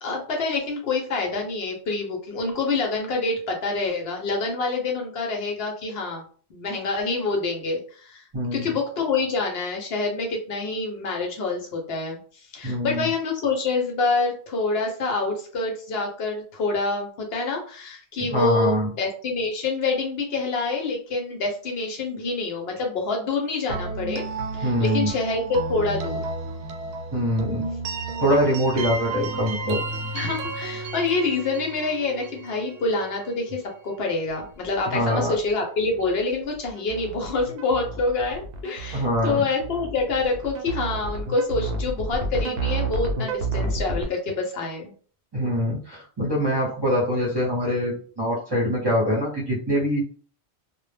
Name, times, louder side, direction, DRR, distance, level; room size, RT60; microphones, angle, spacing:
voice 1, 0.0-6.2 6.5-8.2 8.5-12.2 12.5-24.2 24.5-26.2 30.1-44.9, left 3 dB, 70° left, 1 dB, 0.8 m, -26 dB
voice 2, 8.3-8.7 12.6-13.0 18.2-18.9 24.6-25.1 27.1-27.6 28.2-29.8 34.9-35.3 38.9-39.4 45.3-50.1, equal, 25° right, -6 dB, 0.7 m, -24 dB
sound 1, 23.7-33.5, right 3 dB, 90° right, 0.9 m, -32 dB
sound 2, 34.4-44.1, right 3 dB, 65° right, 0.7 m, -30 dB
2.1 x 2.0 x 3.2 m, 0.44 s
omnidirectional pair, 1.1 m